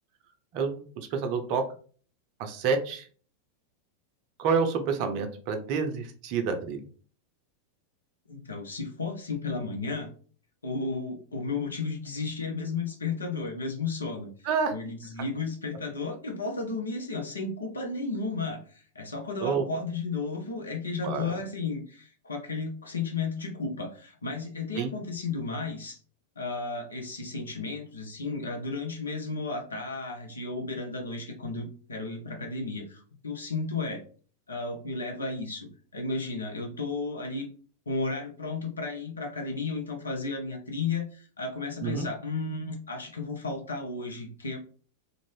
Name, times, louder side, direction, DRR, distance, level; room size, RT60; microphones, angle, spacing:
voice 1, 0.5-1.6 2.4-3.1 4.4-6.8 14.4-14.7 19.4-19.6 21.0-21.3 24.8-24.9 41.8-42.1, right 5 dB, 45° right, 6 dB, 0.5 m, -28 dB
voice 2, 8.3-10.1 10.6-14.3 14.7-26.0 26.4-34.0 34.5-37.5 37.9-44.6, left 3 dB, 75° left, 3 dB, 0.7 m, -33 dB
2.6 x 2.6 x 3.1 m, 0.42 s
figure-of-eight pair, 90°, 0 cm